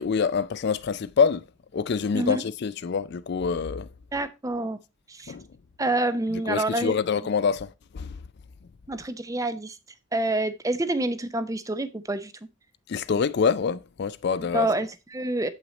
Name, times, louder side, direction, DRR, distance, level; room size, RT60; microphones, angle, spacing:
voice 1, 0.0-1.4 1.7-3.9 5.3-5.5 6.5-8.2 12.9-14.7, left 5 dB, 50° left, 0.4 m, -26 dB
voice 2, 4.1-4.8 5.1-5.3 5.8-6.9 8.9-9.8 10.1-12.3 14.5-15.5, right 1 dB, 15° right, 0.5 m, -27 dB
7.7 x 5.8 x 4.1 m
head